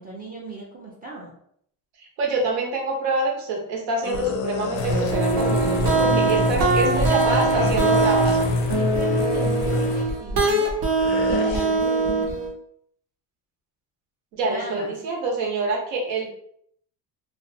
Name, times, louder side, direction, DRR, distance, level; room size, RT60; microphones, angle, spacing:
voice 1, 0.0-1.3 6.0-7.9 8.7-10.7 11.3-12.4 14.5-14.9, right 3 dB, 20° right, -3 dB, 0.5 m, -36 dB
voice 2, 2.2-8.4 14.3-16.3, right 2 dB, 80° right, 0 dB, 1.0 m, -26 dB
sound 1, 4.0-5.1 7.5-8.6 11.0-11.7, left 6 dB, 50° left, 0.5 m, -30 dB
sound 2, 4.7-10.0, left 3 dB, 90° left, 0.6 m, -26 dB
sound 3, 4.9-12.5, right 3 dB, 55° right, 0.8 m, -22 dB
2.5 x 2.1 x 2.6 m, 0.68 s
cardioid pair, 115°, 42 cm